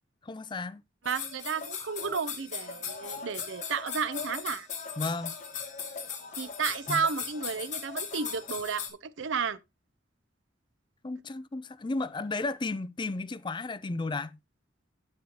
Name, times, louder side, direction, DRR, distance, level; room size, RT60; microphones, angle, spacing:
voice 1, 0.2-0.8 5.0-5.3 6.9-7.0 11.0-14.4, left 3 dB, 25° left, 0.4 m, -33 dB
sound 1, 1.0-8.9, left 6 dB, 40° left, 2.5 m, -38 dB
voice 2, 1.0-4.7 6.4-9.6, right 6 dB, 75° right, 0.7 m, -32 dB
9.6 x 8.1 x 2.9 m
head